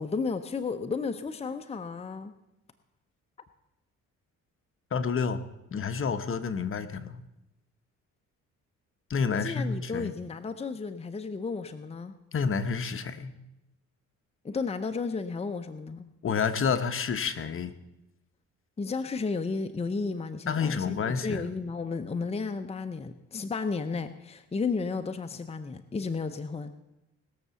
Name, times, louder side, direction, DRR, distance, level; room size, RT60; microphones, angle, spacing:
voice 1, 0.0-2.3 9.3-12.1 14.4-16.1 18.8-26.7, left 4 dB, 20° left, 8 dB, 0.8 m, -33 dB
voice 2, 4.9-5.4 5.7-7.2 9.1-10.1 12.3-13.3 16.2-17.7 20.5-21.4, left 6 dB, 45° left, 10 dB, 1.0 m, -29 dB
19.5 x 6.8 x 7.1 m, 0.92 s
cardioid pair, 90°, 30 cm